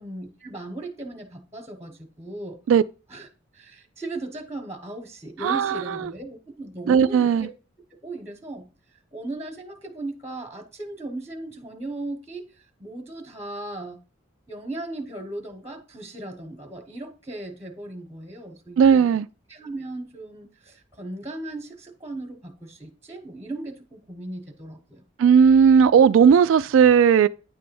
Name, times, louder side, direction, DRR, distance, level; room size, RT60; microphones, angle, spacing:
voice 1, 0.0-2.6 3.1-3.3 3.5-7.3 8.0-8.7 9.1-12.5 12.8-14.0 14.5-19.2 19.5-25.0, right 2 dB, 15° right, 1.0 m, -37 dB
voice 2, 5.4-6.0 6.9-7.5 18.8-19.3 25.2-27.3, right 7 dB, 85° right, 0.3 m, -16 dB
9.4 x 3.4 x 6.8 m
head